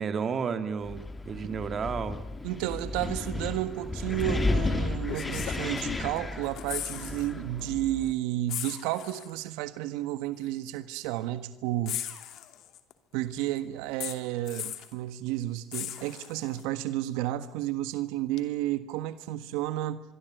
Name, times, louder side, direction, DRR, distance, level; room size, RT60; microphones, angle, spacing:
voice 1, 0.0-2.2, right 6 dB, 35° right, 10 dB, 2.5 m, -32 dB
Wind, 0.8-8.1, left 3 dB, 15° left, 2.4 m, -33 dB
voice 2, 2.4-12.0 13.1-20.0, right 14 dB, 85° right, 12 dB, 1.5 m, -32 dB
sound 1, 4.2-4.3 5.1-6.2 6.4-7.3 7.6-7.7 8.5-9.3 10.4-10.5 11.9-12.9 14.0-14.9 15.7-16.6 18.4-18.5, left 12 dB, 60° left, 2.7 m, -38 dB
26.5 x 23.5 x 9.2 m, 0.78 s
cardioid pair, 125°, 0 cm